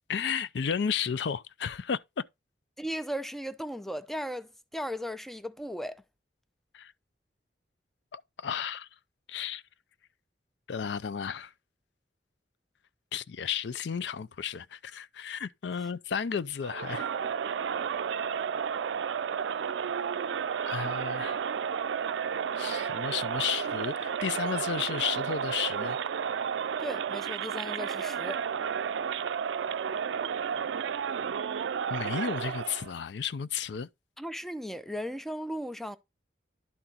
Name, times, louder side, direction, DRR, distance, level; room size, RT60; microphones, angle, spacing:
voice 1, 0.1-2.2 6.7-6.9 8.1-8.9 9.3-9.6 10.7-11.5 13.1-17.1 20.7-21.4 22.6-26.0 31.9-33.9, left 7 dB, 70° left, 0.4 m, -33 dB
voice 2, 2.8-6.0 15.8-15.9 26.8-28.4 34.2-36.0, equal, ahead, 0.4 m, -36 dB
Crowd, 16.6-32.9, right 7 dB, 85° right, 0.4 m, -32 dB
11.0 x 4.2 x 3.8 m
head